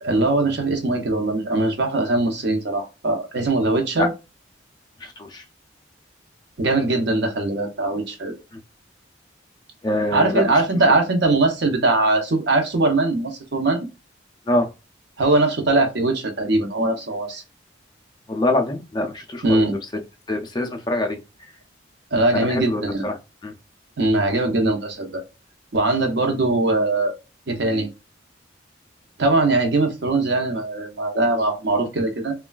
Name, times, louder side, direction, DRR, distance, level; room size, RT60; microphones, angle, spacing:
voice 1, 0.0-4.1 6.6-8.4 10.1-13.9 15.2-17.4 19.4-19.8 22.1-23.1 24.0-25.2 25.7-27.1 27.5-27.9 29.2-32.3, right 2 dB, 60° right, 4 dB, 0.6 m, -21 dB
voice 2, 5.0-5.4 8.5-8.6 9.8-10.8 14.5-14.7 18.3-19.6 20.3-21.5 22.3-23.5, left 1 dB, 20° left, 3 dB, 0.3 m, -25 dB
3.1 x 2.2 x 2.2 m, 0.28 s
head